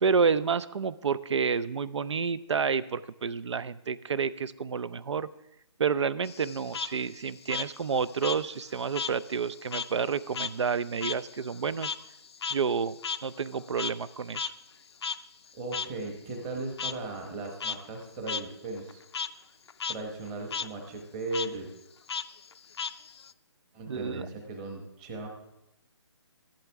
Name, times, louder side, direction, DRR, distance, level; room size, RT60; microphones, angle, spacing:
voice 1, 0.0-5.3 5.8-11.9 12.5-14.5 23.9-24.3, right 6 dB, 70° right, 18 dB, 0.5 m, -29 dB
Frog, 6.2-9.2 9.5-14.1 14.3-14.5 15.0-15.2 15.7-15.9 16.8-16.9 17.4-17.8 18.3-18.4 18.8-19.3 19.7-19.9 20.2-20.7 21.3-21.5 22.1-23.3, left 6 dB, 60° left, 0.5 m, -35 dB
voice 2, 15.5-19.0 19.9-21.7 23.7-25.3, right 2 dB, 15° right, 2 dB, 1.1 m, -37 dB
14.5 x 11.5 x 3.5 m, 0.88 s
hypercardioid pair, 170°, 15 cm